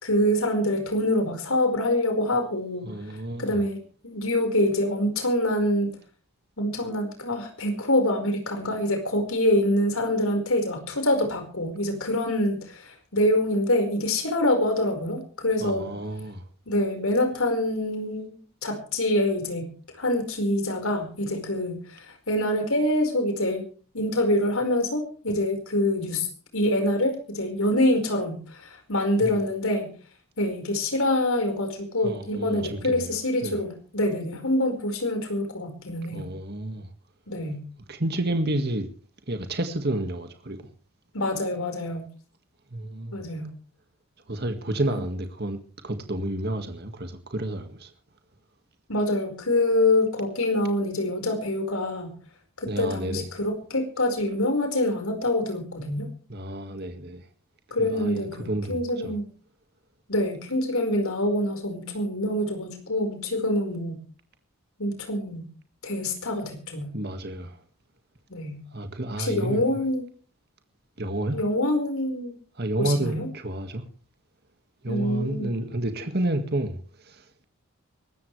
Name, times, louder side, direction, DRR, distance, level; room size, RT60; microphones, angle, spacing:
voice 1, 0.0-2.9 3.4-3.8 4.0-5.9 6.6-15.9 16.7-19.7 19.9-23.7 23.9-26.3 26.5-29.9 30.4-36.3 37.3-37.6 41.1-42.0 43.1-43.5 44.9-45.0 48.9-52.1 52.6-56.1 57.7-59.3 60.1-64.0 64.8-65.5 65.8-66.9 68.3-68.6 69.2-70.0 71.3-72.4 72.8-73.3 74.9-75.6, left 1 dB, 75° left, 4.9 m, -25 dB
voice 2, 2.8-3.6 15.6-16.4 29.2-29.3 32.0-33.1 33.4-33.6 36.1-36.9 37.9-38.9 39.3-40.6 42.7-43.2 44.3-45.6 45.8-47.9 52.7-53.3 56.3-57.2 57.8-59.1 66.9-67.6 68.7-69.6 71.0-71.4 72.6-73.8 74.8-76.8 77.0-77.2, right 1 dB, 45° right, 1.9 m, -30 dB
24.0 x 13.5 x 3.3 m
head